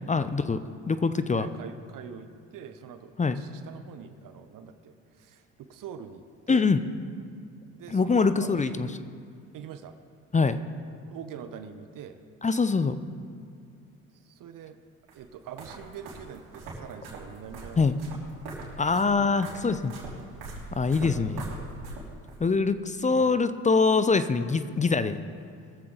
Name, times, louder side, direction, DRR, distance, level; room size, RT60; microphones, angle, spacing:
voice 1, 0.1-0.6 0.9-1.5 3.2-3.4 6.5-6.8 7.9-8.9 10.3-10.6 12.4-13.0 17.8-18.0 18.8-19.9 20.8-21.4 22.4-25.2, left 4 dB, 20° left, 12 dB, 0.6 m, -24 dB
voice 2, 1.3-6.7 7.8-9.1 9.5-10.0 10.9-12.2 14.1-14.8 15.1-18.0 19.1-19.4 23.1-23.4, right 8 dB, 60° right, 9 dB, 0.9 m, -44 dB
sound 1, 15.1-22.4, right 2 dB, 80° right, 3.3 m, -42 dB
21.0 x 7.5 x 3.9 m, 2.2 s
supercardioid pair, 70°, 36 cm